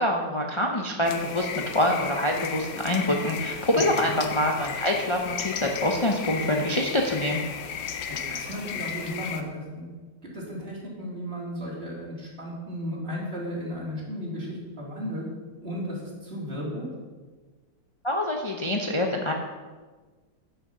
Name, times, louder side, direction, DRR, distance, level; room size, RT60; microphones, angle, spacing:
voice 1, 0.0-7.4 18.0-19.3, left 1 dB, 40° left, 1 dB, 0.4 m, -25 dB
sound 1, 1.0-9.4, left 7 dB, 85° left, 1.6 m, -34 dB
voice 2, 3.7-4.2 8.1-9.9 10.3-15.3 15.6-16.9, equal, 35° right, -4 dB, 3.0 m, -35 dB
10.5 x 6.2 x 6.9 m, 1.4 s
omnidirectional pair, 2.0 m